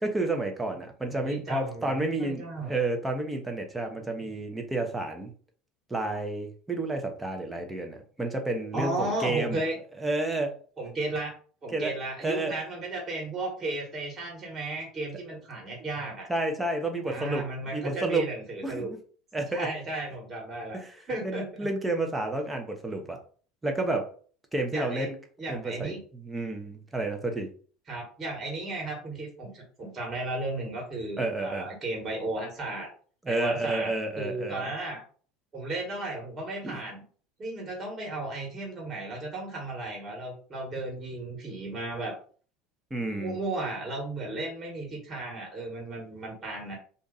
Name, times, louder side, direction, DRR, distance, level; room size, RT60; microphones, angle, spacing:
voice 1, 0.0-5.3 5.9-9.6 10.0-10.5 11.7-11.9 12.2-12.6 16.3-18.3 18.6-19.0 19.3-19.7 20.7-23.2 23.6-24.1 24.5-25.2 25.5-27.5 31.2-31.7 33.2-34.7 36.6-36.8 42.9-43.4, right 2 dB, 15° right, 4 dB, 0.9 m, -30 dB
voice 2, 1.2-2.7 8.7-9.7 10.8-11.3 11.6-16.3 17.1-18.9 19.5-20.8 21.1-21.5 24.7-25.1 25.4-26.0 27.9-32.9 33.3-35.0 35.5-37.0 37.4-42.2 43.2-46.8, right 2 dB, 35° right, 0 dB, 1.6 m, -34 dB
2.6 x 2.5 x 4.0 m, 0.43 s
hypercardioid pair, 75°, 0 cm